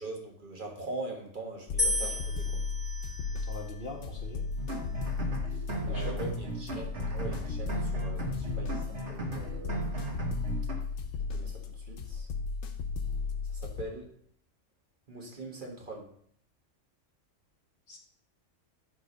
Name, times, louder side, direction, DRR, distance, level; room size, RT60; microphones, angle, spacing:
voice 1, 0.0-2.6 5.5-10.3 11.3-12.3 13.4-14.1 15.1-16.1, right 2 dB, 40° right, 0 dB, 1.6 m, -42 dB
sound 1, 1.7-13.8, left 4 dB, 85° left, 1.1 m, -35 dB
sound 2, 1.8-4.0 4.8-5.3, left 2 dB, ahead, 2.3 m, -34 dB
voice 2, 3.5-4.4 5.8-6.2 17.9-18.0, left 1 dB, 45° left, -1 dB, 1.9 m, -41 dB
sound 3, 4.6-10.7, right 2 dB, 65° right, 1.7 m, -36 dB
9.8 x 3.7 x 5.2 m, 0.64 s
omnidirectional pair, 1.3 m